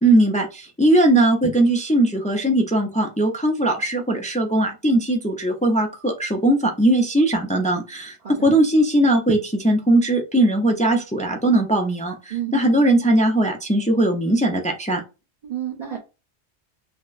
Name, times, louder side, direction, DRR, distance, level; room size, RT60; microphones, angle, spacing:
voice 1, 0.0-8.2 8.4-15.0, right 1 dB, 10° left, 2 dB, 0.3 m, -19 dB
voice 2, 15.4-16.0, right 11 dB, 40° right, 0 dB, 0.8 m, -30 dB
5.8 x 2.1 x 2.4 m, 0.29 s
omnidirectional pair, 1.2 m